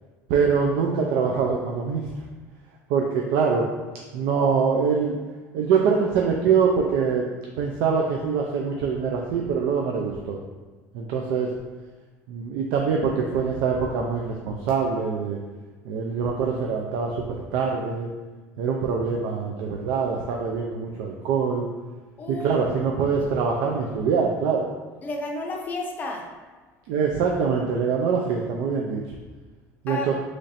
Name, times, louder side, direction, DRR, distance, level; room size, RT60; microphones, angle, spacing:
voice 1, 0.3-2.1 2.9-3.7 4.1-5.2 5.5-7.3 7.6-10.4 10.9-11.5 12.3-15.4 15.8-17.2 17.5-18.1 18.6-21.7 22.3-24.7 26.9-29.0 29.8-30.1, right 5 dB, 75° right, 0 dB, 0.4 m, -24 dB
voice 2, 22.2-22.7 25.0-26.3 29.9-30.1, left 2 dB, 25° left, 1 dB, 0.5 m, -32 dB
3.1 x 2.5 x 4.0 m, 1.3 s
cardioid pair, 145°, 7 cm